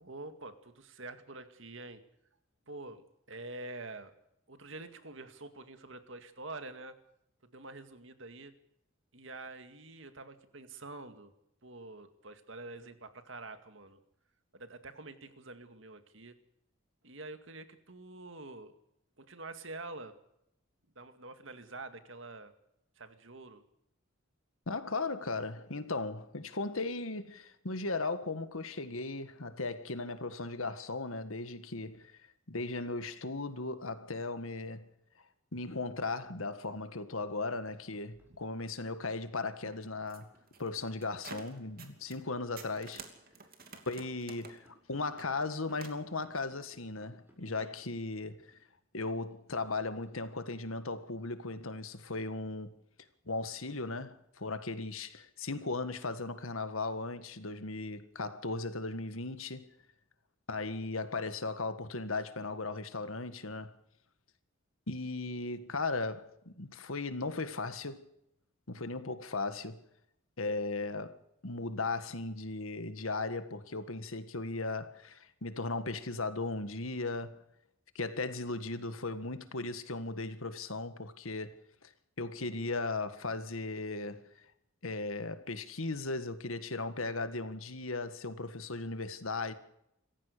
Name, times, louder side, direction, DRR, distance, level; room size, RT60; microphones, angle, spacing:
voice 1, 0.0-2.0 2.7-4.1 4.5-7.0 7.4-8.5 9.1-11.3 11.6-14.0 14.5-16.4 17.0-18.7 19.2-20.2 21.0-22.5 23.0-23.6 38.3-38.4 47.4-47.8, right 2 dB, 65° right, 2.1 m, -47 dB
voice 2, 24.7-32.2 32.5-34.9 35.5-40.3 40.6-43.1 43.9-48.6 48.9-52.7 53.3-59.7 60.5-63.8 64.9-68.1 68.7-69.8 70.4-77.4 78.0-81.9 82.2-84.3 84.8-89.5, left 3 dB, 80° left, 1.7 m, -37 dB
sound 1, 35.8-51.3, right 1 dB, 10° right, 7.5 m, -65 dB
sound 2, 39.4-42.3 42.6-46.0, right 5 dB, 45° right, 2.8 m, -51 dB
26.5 x 15.0 x 6.7 m
head